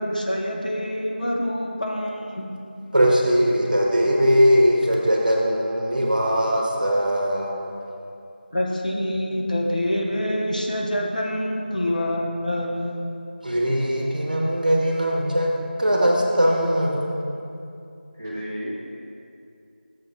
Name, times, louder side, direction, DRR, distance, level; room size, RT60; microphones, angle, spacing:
voice 1, 0.0-2.5 8.5-13.0, left 1 dB, 45° left, -1 dB, 0.8 m, -26 dB
voice 2, 2.9-7.7 13.4-15.5 15.8-17.0, equal, 50° right, -2 dB, 1.1 m, -20 dB
voice 3, 18.1-18.7, equal, 15° right, -8 dB, 0.9 m, -32 dB
6.7 x 5.4 x 4.4 m, 2.6 s
figure-of-eight pair, 175°, 6 cm